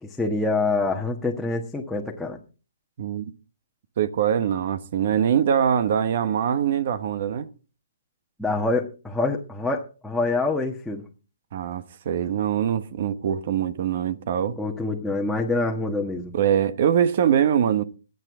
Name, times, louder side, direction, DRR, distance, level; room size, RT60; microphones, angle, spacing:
voice 1, 0.0-2.4 8.4-11.0 14.6-16.4, left 3 dB, ahead, 1.3 m, -26 dB
voice 2, 4.0-7.5 11.5-14.6 16.3-17.8, right 9 dB, 50° right, 1.1 m, -23 dB
22.5 x 8.0 x 3.7 m
hypercardioid pair, 150°, 0 cm